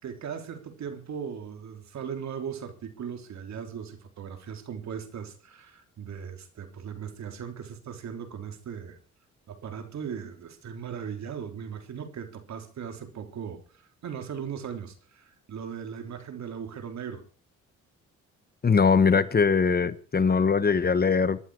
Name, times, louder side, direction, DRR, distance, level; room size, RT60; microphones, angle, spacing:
voice 1, 0.0-9.0 9.5-17.3, right 7 dB, 65° right, 3.5 m, -38 dB
voice 2, 18.6-21.4, left 5 dB, 30° left, 1.2 m, -21 dB
22.5 x 11.5 x 4.8 m
cardioid pair, 90°, 30 cm